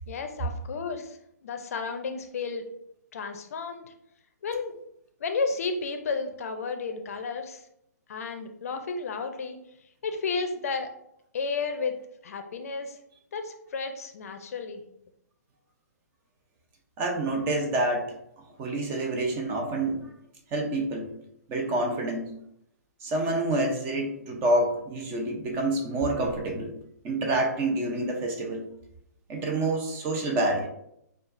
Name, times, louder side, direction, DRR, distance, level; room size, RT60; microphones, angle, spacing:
voice 1, 0.1-2.7 3.1-3.9 4.4-4.8 5.2-7.6 8.1-9.6 10.0-10.9 11.3-11.9 12.2-13.0 13.3-14.8, left 4 dB, 55° left, 6 dB, 0.6 m, -32 dB
voice 2, 17.0-18.1 18.6-20.1 20.5-21.1 21.5-22.3 23.0-26.7 27.0-28.7 29.3-30.7, right 2 dB, 25° right, 2 dB, 0.7 m, -27 dB
6.4 x 2.4 x 2.6 m, 0.76 s
figure-of-eight pair, 130°, 9 cm